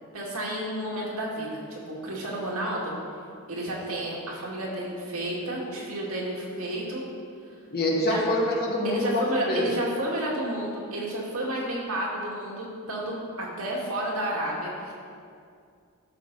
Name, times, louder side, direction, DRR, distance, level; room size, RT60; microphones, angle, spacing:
voice 1, 0.1-2.9 3.5-7.0 8.1-8.2 8.8-14.9, right 1 dB, 80° right, -4 dB, 2.2 m, -31 dB
voice 2, 7.7-9.6, left 1 dB, 45° left, -3 dB, 1.7 m, -25 dB
12.5 x 6.6 x 4.0 m, 2.3 s
head